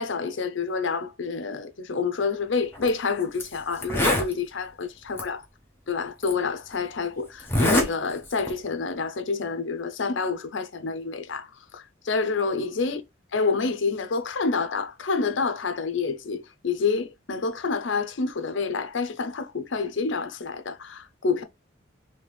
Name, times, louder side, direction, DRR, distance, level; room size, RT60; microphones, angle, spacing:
voice 1, 0.0-5.4 5.9-13.0 13.3-21.4, left 4 dB, 70° left, 0.6 m, -28 dB
Zipper (clothing), 2.7-2.9 3.4-3.5 3.8-4.3 5.2-5.3 6.2-6.3 7.4-7.9 8.2-8.6, left 1 dB, 10° left, 0.8 m, -23 dB
3.4 x 2.8 x 3.0 m
head